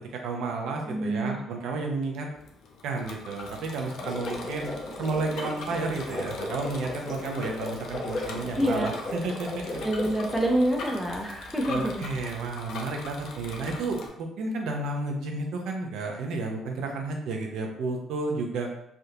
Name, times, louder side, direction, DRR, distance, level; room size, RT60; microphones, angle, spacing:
voice 1, 0.1-2.3 2.8-4.7 5.0-9.6 11.7-18.7, right 3 dB, 70° right, 1 dB, 0.6 m, -32 dB
voice 2, 0.8-1.4 8.6-9.0 9.8-12.1, right 1 dB, ahead, 0 dB, 0.5 m, -27 dB
Bicycle, 2.3-14.1, left 3 dB, 60° left, 0.5 m, -42 dB
sound 1, 3.8-10.6, left 2 dB, 35° left, 0.8 m, -36 dB
3.3 x 2.5 x 2.8 m, 0.76 s
cardioid pair, 160°, 0 cm